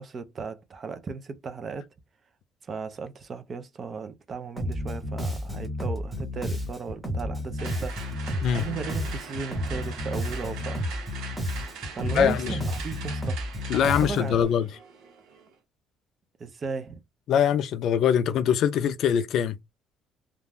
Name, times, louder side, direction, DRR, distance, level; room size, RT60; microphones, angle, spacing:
voice 1, 0.0-1.9 2.6-8.0 8.5-10.9 11.9-13.4 13.7-14.4 16.4-17.0, right 5 dB, 30° right, 0.4 m, -36 dB
Bass guitar, 4.6-14.4, left 1 dB, 5° right, 1.0 m, -32 dB
sound 1, 7.6-15.5, right 6 dB, 80° right, 0.9 m, -42 dB
voice 2, 12.0-12.6 13.7-14.7 17.3-19.6, left 8 dB, 55° left, 0.3 m, -23 dB
2.4 x 2.2 x 3.2 m
cardioid pair, 160°, 0 cm